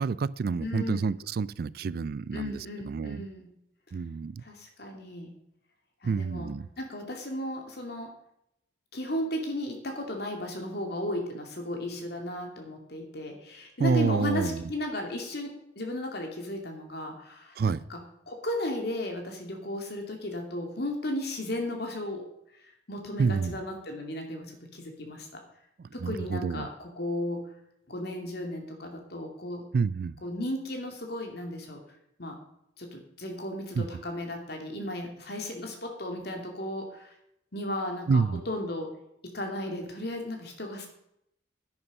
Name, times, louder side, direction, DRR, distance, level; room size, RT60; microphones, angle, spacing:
voice 1, 0.0-3.2 3.9-4.4 6.0-6.7 13.8-14.6 17.6-17.8 23.2-23.6 26.0-26.7 29.7-30.1 33.8-33.9 38.1-38.4, right 5 dB, 55° right, 20 dB, 0.3 m, -28 dB
voice 2, 0.6-1.2 2.3-3.5 4.4-5.3 6.0-8.1 8.9-17.6 17.9-22.3 22.9-25.4 25.9-27.5 27.9-29.7 30.2-31.8 32.2-32.4 32.8-37.1 37.5-38.9 39.2-40.9, left 1 dB, 60° left, 3 dB, 2.5 m, -35 dB
11.0 x 9.6 x 5.3 m, 0.78 s
head